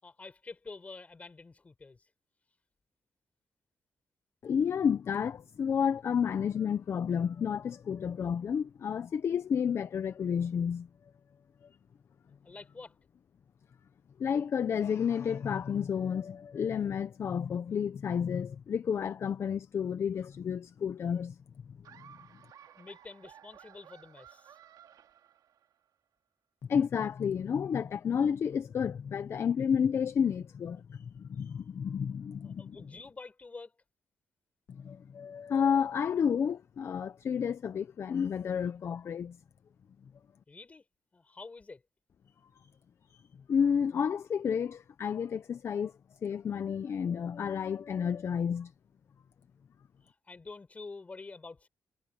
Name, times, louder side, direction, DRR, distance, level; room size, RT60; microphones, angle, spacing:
voice 1, 0.0-2.1 12.4-13.0 22.7-24.6 32.4-33.8 40.5-40.8 41.1-41.8 50.0-51.7, left 3 dB, 20° left, 5.7 m, -48 dB
voice 2, 4.4-10.9 14.2-21.4 26.7-32.8 34.7-39.4 43.1-43.2 43.5-45.9 46.2-48.7, left 7 dB, 45° left, 0.6 m, -31 dB
Laughter, 21.8-25.9, right 9 dB, 85° right, 2.6 m, -56 dB
wide cardioid pair, 175°, 6 cm